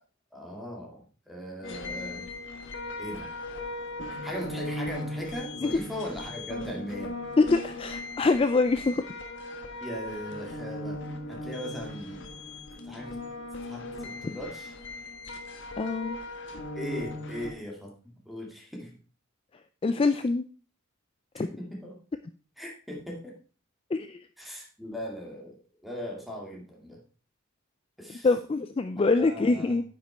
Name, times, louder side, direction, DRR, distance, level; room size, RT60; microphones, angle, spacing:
voice 1, 0.3-2.3 3.0-3.3 4.1-7.1 9.8-11.0 11.3-12.3 12.9-13.2 13.7-14.7 16.8-17.9 18.3-18.9 21.6-22.0 22.6-23.3 24.4-25.5 25.8-27.0 28.0-28.3 29.2-29.7, equal, ahead, -2 dB, 2.2 m, -38 dB
sound 1, 1.6-17.5, left 1 dB, 60° left, 1.4 m, -38 dB
voice 2, 7.4-9.0 14.2-14.3 15.8-16.2 19.8-20.5 21.3-21.5 23.9-24.3 28.1-29.8, left 3 dB, 25° left, 10 dB, 0.3 m, -25 dB
9.2 x 5.9 x 4.5 m, 0.38 s
head